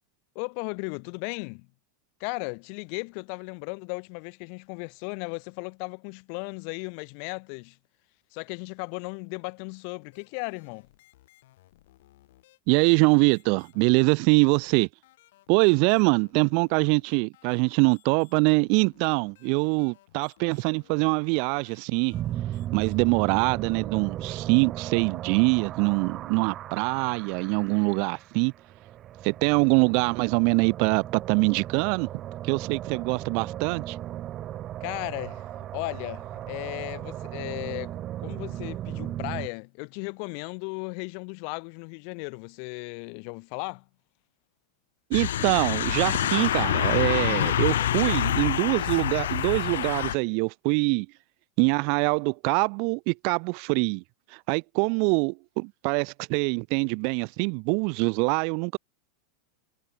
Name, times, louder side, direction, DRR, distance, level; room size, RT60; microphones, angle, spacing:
voice 1, 0.3-1.7 2.2-7.8 8.3-10.9 34.8-35.5 35.7-37.9 38.2-43.8, left 40 dB or more, 55° left, 0.9 m, -36 dB
sound 1, 10.1-25.4 26.1-28.2, left 16 dB, 70° left, 3.7 m, -61 dB
voice 2, 12.7-14.9 15.5-22.1 22.7-28.5 29.2-32.1 32.4-34.0 45.1-51.1 51.6-54.0 54.3-58.8, right 40 dB or more, 55° right, 0.4 m, -24 dB
sound 2, 22.1-39.5, right 12 dB, 35° right, 1.1 m, -36 dB
sound 3, 45.1-50.2, left 11 dB, 90° left, 0.4 m, -26 dB
supercardioid pair, 130°, 0 cm